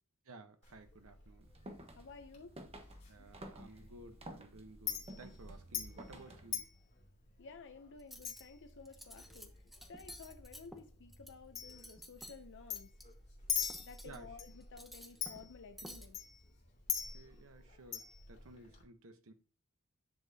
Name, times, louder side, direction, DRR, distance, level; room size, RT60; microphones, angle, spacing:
voice 1, 0.3-1.5 3.1-6.7 14.0-14.4 17.1-19.3, right 2 dB, 65° right, 1.0 m, -55 dB
Chink clink, 0.6-18.8, left 8 dB, 30° left, 2.8 m, -45 dB
sound 1, 1.4-6.6, right 1 dB, 30° right, 1.2 m, -53 dB
voice 2, 2.0-2.5 7.4-9.5 9.9-12.9 13.8-16.2, left 4 dB, 55° left, 0.6 m, -54 dB
Cutlery silverware, 8.0-8.4 8.9-9.5 9.7-11.3 11.7-12.4 12.8-13.0 13.6-14.2 14.6-15.5 15.8-16.1, equal, ahead, 0.9 m, -51 dB
10.0 x 7.3 x 2.8 m
head